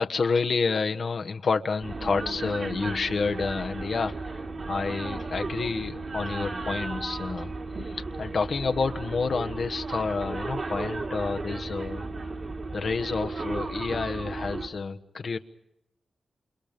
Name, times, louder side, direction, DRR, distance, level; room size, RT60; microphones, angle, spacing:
voice 1, 0.0-7.5 7.8-12.0 12.7-15.4, left 4 dB, 65° left, 7 dB, 1.3 m, -29 dB
sound 1, 1.8-14.7, right 3 dB, 55° right, 3.1 m, -34 dB
29.0 x 28.5 x 5.2 m, 0.88 s
cardioid pair, 55°, 0 cm